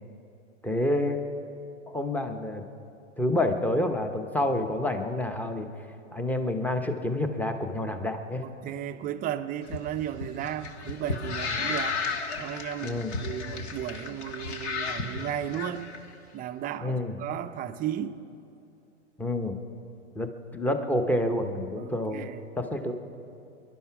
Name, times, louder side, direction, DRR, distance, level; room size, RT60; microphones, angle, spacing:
voice 1, 0.6-1.2 1.9-2.6 3.2-5.7 6.1-8.5 12.8-13.2 16.8-17.2 19.2-19.6 20.1-22.3 22.6-22.9, left 1 dB, 5° left, 7 dB, 0.9 m, -28 dB
voice 2, 8.4-12.0 12.4-15.9 16.3-18.2 21.7-22.4, right 10 dB, 25° right, 10 dB, 0.6 m, -35 dB
sound 1, 9.6-16.0, left 4 dB, 60° left, 1.6 m, -33 dB
24.5 x 11.5 x 4.7 m, 2.7 s
hypercardioid pair, 120°, 37 cm